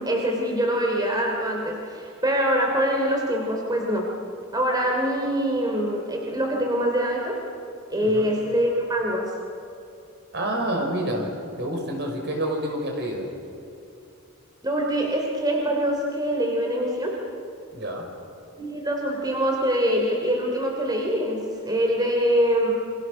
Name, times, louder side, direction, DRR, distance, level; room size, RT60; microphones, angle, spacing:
voice 1, 0.0-4.0 4.5-7.4 7.9-9.2 14.6-17.1 18.6-22.7, equal, 20° right, 0 dB, 3.2 m, -24 dB
voice 2, 10.3-11.3 11.6-13.3 17.7-18.1, right 1 dB, 55° right, 2 dB, 5.3 m, -28 dB
29.0 x 25.5 x 6.5 m, 2.7 s
head